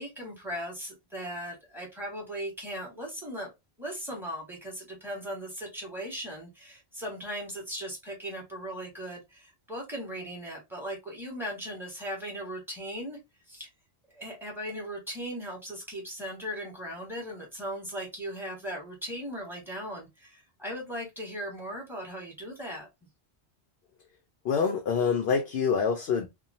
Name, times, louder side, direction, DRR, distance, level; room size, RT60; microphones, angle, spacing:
voice 1, 0.0-3.5 3.8-13.2 13.5-13.7 14.1-22.9, equal, ahead, 1.4 m, -38 dB
voice 2, 24.4-26.3, left 6 dB, 70° left, 0.8 m, -26 dB
2.9 x 2.3 x 2.5 m
omnidirectional pair, 1.1 m